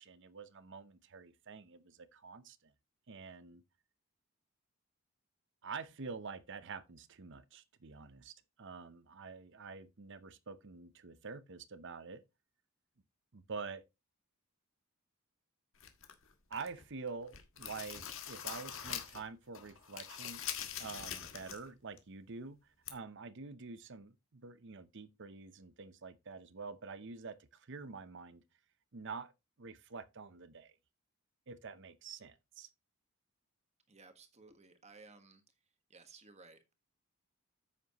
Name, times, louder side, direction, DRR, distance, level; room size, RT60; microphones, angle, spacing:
voice 1, 0.0-2.7 3.1-3.6 5.6-12.2 13.3-13.8 16.5-20.4 20.8-28.4 28.9-29.3 29.6-30.7 31.5-32.7, right 4 dB, 55° right, 0.7 m, -47 dB
sound 1, 15.8-16.8 17.2-19.3 19.5-21.7 22.0-22.1 22.9-23.0, left 9 dB, 60° left, 1.5 m, -43 dB
voice 2, 33.9-35.4 35.9-36.7, right 3 dB, 30° right, 1.4 m, -58 dB
9.6 x 8.0 x 3.0 m
head